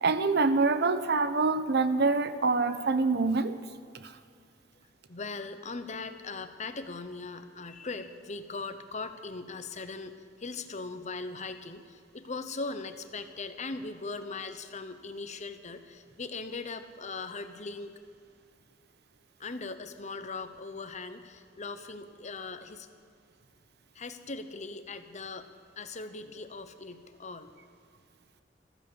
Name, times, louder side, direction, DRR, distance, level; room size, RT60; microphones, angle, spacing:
voice 1, 0.0-3.6, right 3 dB, 60° right, 11 dB, 0.9 m, -25 dB
voice 2, 5.1-17.9 19.4-22.9 23.9-25.5 25.8-27.5, left 3 dB, 40° left, 9 dB, 1.0 m, -39 dB
14.5 x 14.0 x 6.9 m, 2.3 s
head